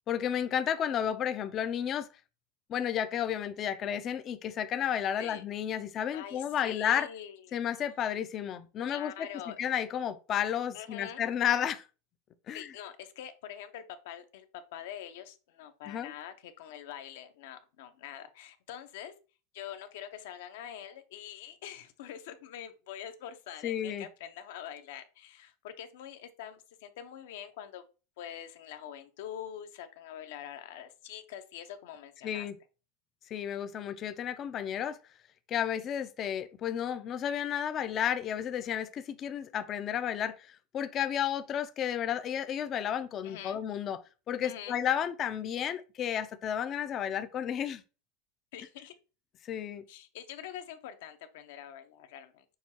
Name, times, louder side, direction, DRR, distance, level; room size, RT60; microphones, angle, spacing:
voice 1, 0.1-2.1 2.7-7.1 7.5-9.3 9.6-11.9 12.5-12.7 15.9-16.1 23.6-24.1 32.2-32.6 33.3-35.0 35.5-44.0 44.3-47.8 49.4-49.8, left 9 dB, 25° left, 0.4 m, -32 dB
voice 2, 6.1-7.6 8.9-9.6 10.7-11.2 12.5-14.5 14.7-19.1 19.5-27.8 28.2-32.5 43.2-43.6 44.4-44.8 48.5-48.9 49.9-52.4, left 10 dB, 65° left, 0.7 m, -45 dB
6.3 x 2.3 x 2.8 m
supercardioid pair, 165°, 0 cm